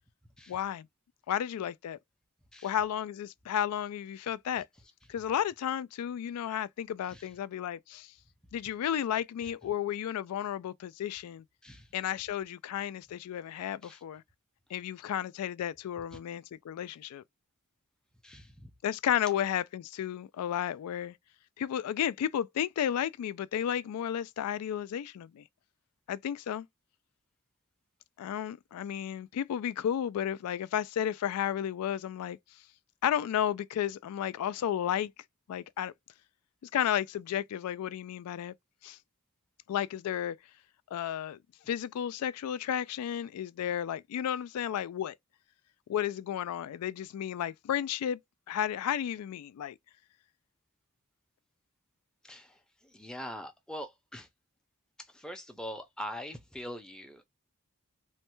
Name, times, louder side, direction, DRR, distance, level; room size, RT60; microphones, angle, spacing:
voice 1, 0.5-0.9 1.3-2.0 2.6-4.7 5.1-8.1 8.5-11.4 11.9-14.2 14.7-17.2 18.8-21.1 21.6-25.4 26.1-26.7 28.2-32.4 33.0-35.1 35.5-35.9 36.7-38.5 38.8-39.0 39.7-40.4 40.9-41.4 41.7-45.2 45.9-48.2 48.5-49.8, left 10 dB, 85° left, 0.3 m, -33 dB
voice 2, 18.2-18.7 52.2-54.3 55.1-57.3, equal, 5° left, 0.5 m, -43 dB
3.1 x 2.1 x 3.0 m
head